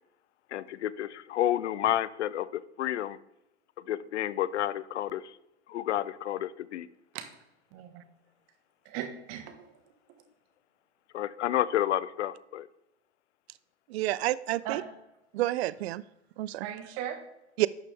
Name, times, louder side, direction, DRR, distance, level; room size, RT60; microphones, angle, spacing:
voice 1, 0.5-3.2 3.9-5.3 5.7-6.9 11.1-12.7, left 12 dB, 70° left, 18 dB, 0.6 m, -30 dB
voice 2, 7.7-8.0 8.8-9.7 14.6-14.9 16.6-17.2, right 10 dB, 45° right, 7 dB, 1.6 m, -37 dB
voice 3, 13.9-14.8 15.3-16.0 16.4-16.7 17.6-17.7, right 16 dB, 60° right, 18 dB, 0.5 m, -29 dB
11.5 x 6.7 x 3.5 m, 0.90 s
hypercardioid pair, 105°, 36 cm